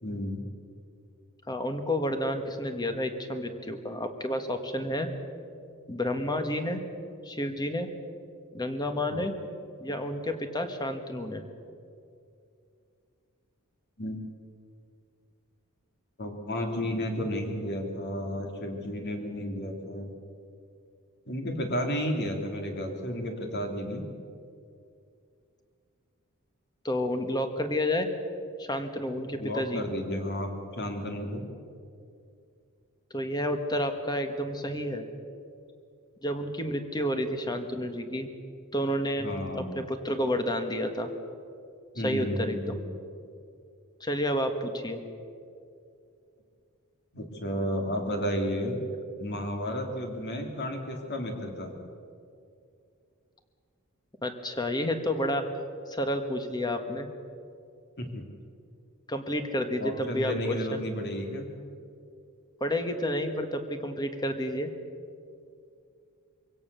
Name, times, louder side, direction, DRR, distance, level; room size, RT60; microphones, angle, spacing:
voice 1, 0.0-0.4 9.1-9.2 14.0-14.2 16.2-20.1 21.3-24.0 29.4-31.4 39.2-39.7 41.9-42.8 47.1-48.8 49.2-51.7 58.0-58.1 59.8-61.5, equal, 50° left, 3 dB, 3.0 m, -32 dB
voice 2, 1.5-5.1 5.9-6.8 7.2-7.9 8.5-9.3 9.8-11.4 26.8-28.1 28.6-29.8 33.1-35.1 36.2-38.3 38.7-39.3 39.5-41.1 42.0-42.8 44.0-45.0 54.2-55.4 55.9-57.1 59.1-60.8 62.6-64.7, left 1 dB, 20° left, 7 dB, 1.6 m, -30 dB
24.0 x 17.0 x 6.9 m, 2.4 s
head